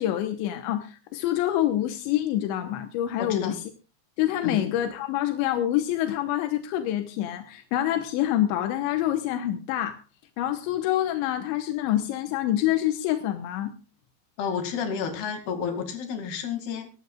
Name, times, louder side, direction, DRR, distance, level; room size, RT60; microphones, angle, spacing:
voice 1, 0.0-3.6 4.2-10.0 10.4-13.7, left 12 dB, 85° left, 7 dB, 3.2 m, -26 dB
voice 2, 3.2-3.6 4.4-4.6 14.4-16.9, left 6 dB, 65° left, 6 dB, 4.2 m, -31 dB
24.0 x 12.5 x 2.4 m, 0.34 s
omnidirectional pair, 5.2 m